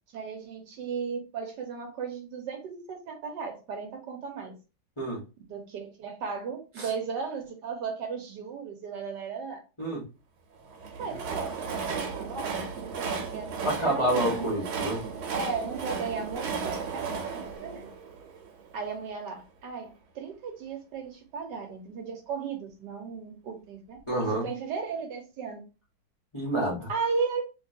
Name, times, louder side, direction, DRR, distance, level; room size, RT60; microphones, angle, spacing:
voice 1, 0.1-4.5 5.5-9.6 11.0-12.7 13.0-14.5 15.3-17.9 18.7-24.0 24.3-25.6 26.9-27.4, right 5 dB, 70° right, 1.1 m, -35 dB
Train, 10.7-18.8, right 5 dB, 85° right, 1.5 m, -35 dB
voice 2, 13.6-15.0 24.1-24.4 26.3-26.9, right 1 dB, 45° left, 0.3 m, -28 dB
2.8 x 2.7 x 2.6 m
omnidirectional pair, 2.2 m